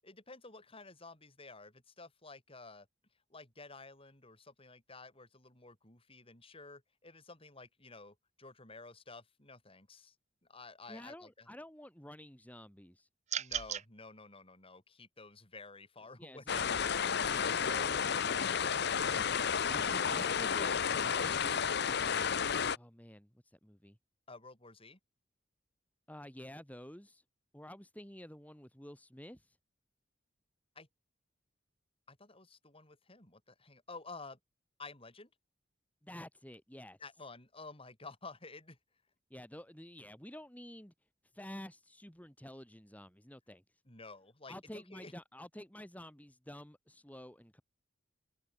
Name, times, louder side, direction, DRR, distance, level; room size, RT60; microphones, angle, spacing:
voice 1, 0.0-2.9 3.3-10.2 10.5-11.5 13.4-16.6 24.3-25.0 30.7-30.9 32.1-34.4 34.8-35.3 37.0-38.8 43.9-45.1, left 3 dB, 30° left, 7.7 m, -52 dB
voice 2, 10.9-13.1 16.2-18.8 19.6-22.5 22.7-24.0 26.1-27.2 27.5-29.6 36.0-37.0 39.3-40.9 41.2-43.8 44.5-47.6, left 1 dB, 10° left, 3.0 m, -50 dB
sound 1, 13.3-13.9, right 10 dB, 35° right, 0.5 m, -36 dB
sound 2, 16.5-22.8, left 7 dB, 60° left, 0.9 m, -32 dB
head